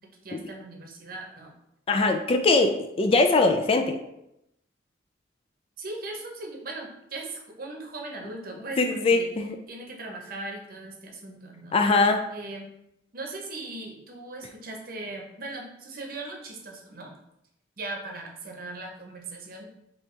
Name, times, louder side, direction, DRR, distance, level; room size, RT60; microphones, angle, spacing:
voice 1, 0.2-1.5 5.8-9.3 9.7-11.8 12.3-12.7 13.1-17.1 17.8-19.7, right 2 dB, 50° right, 1 dB, 0.8 m, -39 dB
voice 2, 1.9-4.0 8.8-9.6 11.7-12.2, left 3 dB, 30° left, 5 dB, 0.3 m, -22 dB
4.5 x 2.9 x 3.2 m, 0.81 s
head